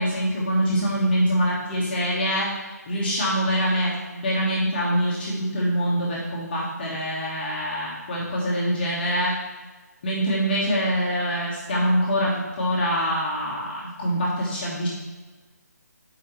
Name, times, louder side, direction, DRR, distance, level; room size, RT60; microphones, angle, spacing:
voice 1, 0.0-2.5 2.9-9.4 10.0-14.9, equal, 35° left, -5 dB, 1.2 m, -24 dB
8.1 x 4.8 x 3.0 m, 1.3 s
figure-of-eight pair, 160°, 9 cm